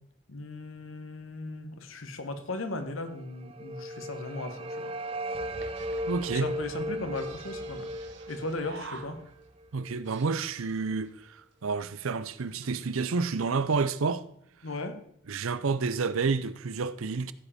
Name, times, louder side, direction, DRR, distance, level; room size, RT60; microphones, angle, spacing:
voice 1, 0.3-4.9 6.3-7.9 8.3-9.2 14.6-15.0, left 2 dB, 80° left, 1.3 m, -37 dB
sound 1, 3.1-10.1, equal, 25° right, 0.4 m, -37 dB
sound 2, 5.5-9.5 9.8-11.1 11.7-11.8 11.9-12.1 12.4-12.7, right 4 dB, 55° right, 1.1 m, -49 dB
voice 2, 6.1-6.5 9.7-14.2 15.3-17.3, right 4 dB, 85° right, 0.6 m, -29 dB
15.0 x 5.1 x 5.0 m
head